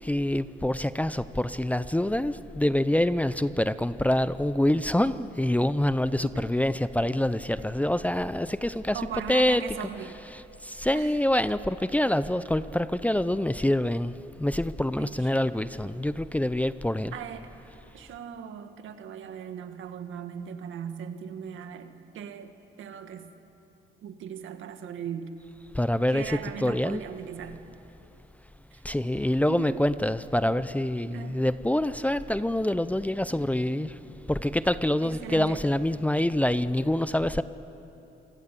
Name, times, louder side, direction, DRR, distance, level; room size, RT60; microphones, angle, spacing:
voice 1, 0.0-9.0 9.3-9.6 10.3-17.1 25.7-27.0 28.8-37.4, left 1 dB, 5° left, 14 dB, 0.7 m, -26 dB
voice 2, 8.9-10.2 10.9-11.1 15.0-15.3 17.1-17.5 17.9-23.3 24.0-25.3 26.1-27.6 28.7-28.8 29.5-29.8 31.1-31.4 35.0-35.6, right 8 dB, 80° right, 7 dB, 1.9 m, -39 dB
27.5 x 24.0 x 8.5 m, 3.0 s
cardioid pair, 90°, 20 cm